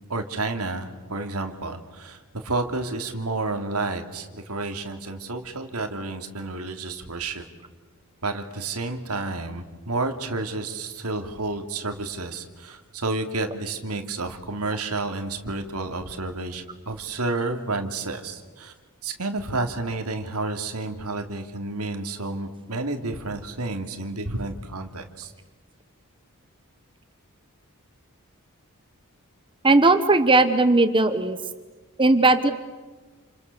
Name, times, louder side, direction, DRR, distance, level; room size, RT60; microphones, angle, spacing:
voice 1, 0.1-7.4 8.2-18.7 19.0-25.3, right 2 dB, 80° right, 5 dB, 2.8 m, -30 dB
voice 2, 29.6-31.4 32.0-32.5, right 2 dB, 20° right, 10 dB, 1.1 m, -18 dB
29.5 x 28.5 x 6.9 m, 1.3 s
head